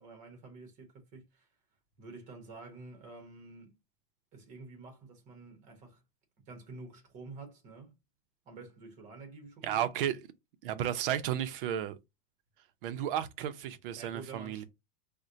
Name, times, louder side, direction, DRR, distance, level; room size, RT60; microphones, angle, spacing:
voice 1, 0.0-1.5 2.0-3.8 4.3-6.0 6.5-7.9 8.4-9.9 14.0-14.6, right 3 dB, 25° right, 0.9 m, -49 dB
voice 2, 9.6-10.2 10.6-12.0 12.8-14.6, right 10 dB, 60° right, 0.5 m, -33 dB
4.1 x 2.1 x 2.5 m
supercardioid pair, 165°, 31 cm